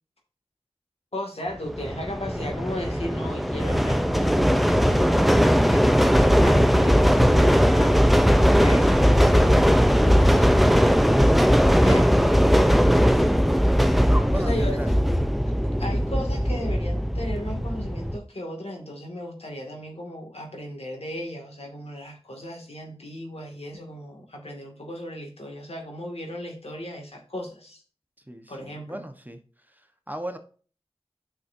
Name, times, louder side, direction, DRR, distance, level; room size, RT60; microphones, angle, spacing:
voice 1, 1.1-8.0 8.4-9.8 10.0-10.5 11.8-12.1 14.3-14.9 15.6-27.8 28.5-29.0, left 1 dB, 85° left, 1 dB, 2.3 m, -36 dB
sound 1, 1.7-18.2, equal, ahead, 0.6 m, -19 dB
voice 2, 13.0-13.4 13.7-14.9 28.3-29.4 29.7-30.4, right 1 dB, 15° right, 6 dB, 1.2 m, -37 dB
9.6 x 6.1 x 2.7 m, 0.39 s
wide cardioid pair, 55°, 10 cm